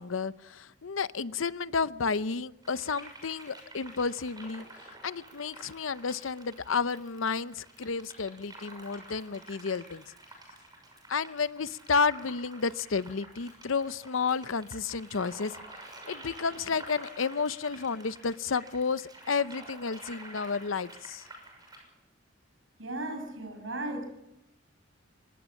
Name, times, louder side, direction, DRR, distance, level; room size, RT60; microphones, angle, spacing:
voice 1, 0.0-4.6 5.0-10.0 11.1-15.6 16.1-21.2, left 5 dB, 85° left, 15 dB, 0.8 m, -31 dB
sound 1, 2.6-21.8, right 2 dB, 20° right, 6.6 m, -49 dB
voice 2, 22.8-24.1, right 1 dB, 75° right, 6 dB, 6.5 m, -36 dB
25.0 x 20.5 x 7.3 m, 0.89 s
head